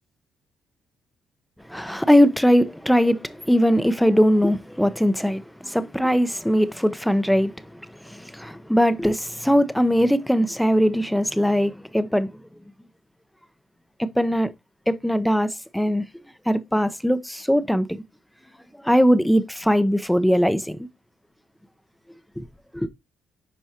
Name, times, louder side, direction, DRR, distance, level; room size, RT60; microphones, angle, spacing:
voice 1, 1.7-7.5 8.1-12.3 14.0-14.5 14.9-16.0 16.5-18.0 18.8-20.9 22.4-22.5 22.7-22.9, equal, 5° left, 0.7 m, -20 dB
10.0 x 4.6 x 2.9 m
cardioid pair, 90°, 0 cm